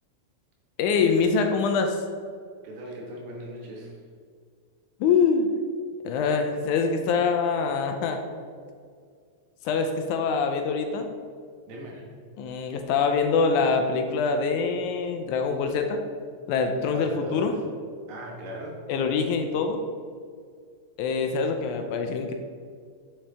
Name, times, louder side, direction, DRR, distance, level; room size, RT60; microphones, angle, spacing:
voice 1, 0.8-2.0 5.0-5.5 6.0-8.2 9.7-11.1 12.4-16.0 16.5-17.5 18.9-19.8 21.0-22.3, left 5 dB, 80° left, 5 dB, 1.9 m, -24 dB
voice 2, 2.6-3.9 11.7-12.1 16.9-17.6 18.1-18.8, equal, 85° right, -2 dB, 3.0 m, -38 dB
6.8 x 5.7 x 3.3 m, 2.1 s
omnidirectional pair, 3.7 m